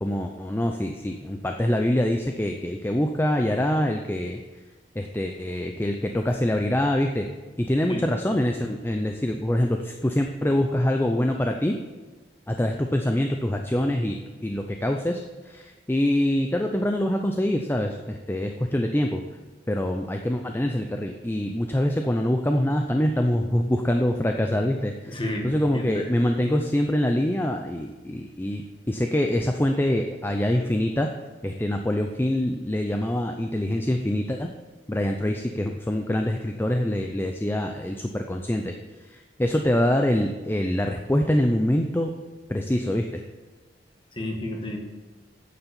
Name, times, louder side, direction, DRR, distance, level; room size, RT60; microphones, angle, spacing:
voice 1, 0.0-4.4 4.9-7.3 7.6-11.8 12.5-19.2 19.7-31.1 31.4-34.5 34.9-38.7 39.1-42.1 42.5-43.2, left 1 dB, 10° left, 4 dB, 0.5 m, -25 dB
voice 2, 25.1-26.0 44.1-44.8, left 1 dB, 30° left, 1 dB, 1.7 m, -31 dB
9.4 x 7.1 x 6.9 m, 1.3 s
head